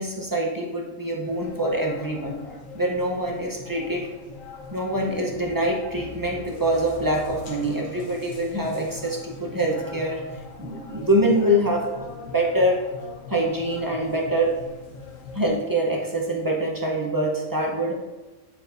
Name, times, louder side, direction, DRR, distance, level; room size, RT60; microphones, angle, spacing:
voice 1, 0.0-2.4 2.7-4.1 4.7-12.8 13.3-14.5 15.3-17.9, right 1 dB, 20° right, -1 dB, 0.5 m, -25 dB
sound 1, 1.2-15.5, left 4 dB, 70° left, 1.2 m, -41 dB
9.2 x 4.5 x 2.6 m, 1.2 s
omnidirectional pair, 1.5 m